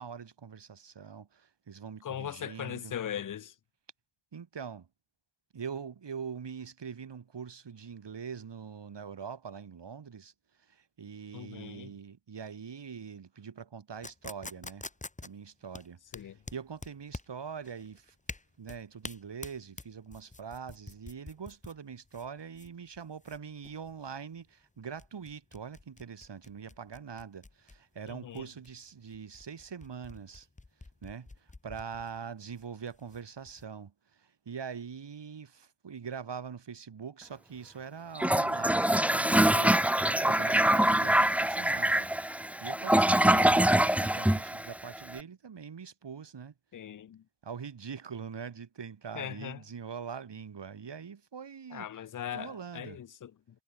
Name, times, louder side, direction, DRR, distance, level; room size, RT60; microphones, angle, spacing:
voice 1, 0.0-3.0 4.3-4.9 5.5-10.3 10.6-14.9 15.2-18.2 18.6-30.5 31.0-46.5 47.4-51.9 52.3-53.0, right 6 dB, 80° right, 5.7 m, -43 dB
voice 2, 2.0-3.5 11.3-11.9 16.1-16.4 28.1-28.4 46.7-47.2 49.1-49.6 51.7-53.3, left 10 dB, 50° left, 0.6 m, -39 dB
sound 1, 14.0-33.6, left 3 dB, 20° left, 1.1 m, -48 dB
Toilet flush, 38.2-45.1, right 1 dB, 5° right, 0.4 m, -24 dB
wide cardioid pair, 95°, 41 cm